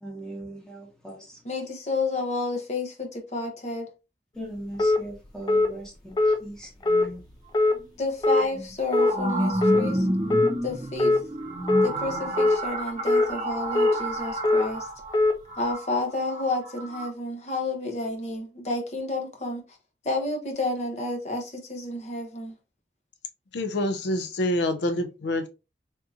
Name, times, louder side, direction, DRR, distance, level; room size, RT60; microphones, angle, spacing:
voice 1, 0.0-1.4 4.3-7.2, right 1 dB, 5° left, 1.1 m, -40 dB
voice 2, 1.4-3.9 7.9-10.1 10.6-11.2 11.8-14.9 15.6-19.6 20.0-22.6, left 2 dB, 40° left, 0.8 m, -30 dB
sound 1, 4.8-5.0 5.5-5.7 6.2-6.4 6.8-7.1 7.5-7.8 8.2-8.4 8.9-9.1 9.6-9.8 10.3-10.5 11.0-11.2 11.7-11.9 12.4-12.6 13.1-13.3 13.7-14.0 14.4-14.6 15.1-15.3, left 2 dB, 25° left, 0.3 m, -20 dB
sound 2, 7.7-7.8 8.5-17.1, right 1 dB, 45° right, 0.8 m, -30 dB
voice 3, 23.5-25.5, left 1 dB, 85° left, 0.5 m, -26 dB
3.6 x 2.7 x 2.6 m
head